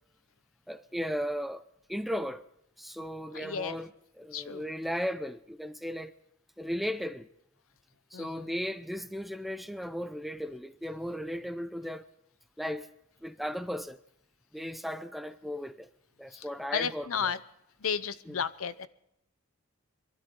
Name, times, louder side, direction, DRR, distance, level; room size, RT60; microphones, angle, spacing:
voice 1, 0.7-1.6 1.9-2.4 2.8-3.9 4.2-6.1 6.6-7.3 8.1-12.0 12.6-12.9 13.2-14.0 14.5-15.9 16.2-17.4 18.3-18.4, equal, ahead, 0.6 m, -36 dB
voice 2, 3.3-3.8 4.3-4.7 8.1-8.5 16.3-16.4 16.7-17.4 17.8-18.9, left 7 dB, 70° left, 0.7 m, -33 dB
22.5 x 12.5 x 3.8 m
head